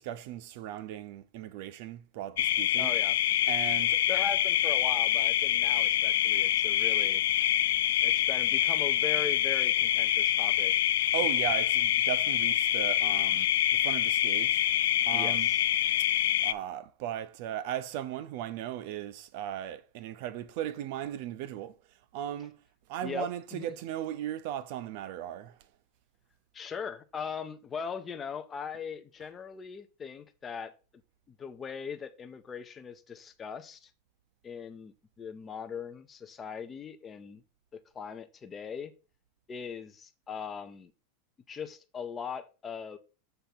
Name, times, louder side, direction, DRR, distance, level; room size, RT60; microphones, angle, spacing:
voice 1, 0.0-2.9 3.5-4.0 11.1-14.7 15.1-15.5 16.4-21.8 22.1-22.6 22.9-25.6, right 11 dB, 55° right, 0.7 m, -37 dB
sound 1, 2.4-16.5, left 12 dB, 80° left, 0.4 m, -26 dB
voice 2, 2.8-3.2 4.1-7.2 8.0-10.7 15.1-15.6 23.0-23.7 26.5-30.7 31.4-33.9 34.4-37.4 37.7-38.9 39.5-40.9 41.5-43.0, left 6 dB, 15° left, 0.5 m, -40 dB
6.8 x 3.5 x 5.9 m
supercardioid pair, 160°, 0 cm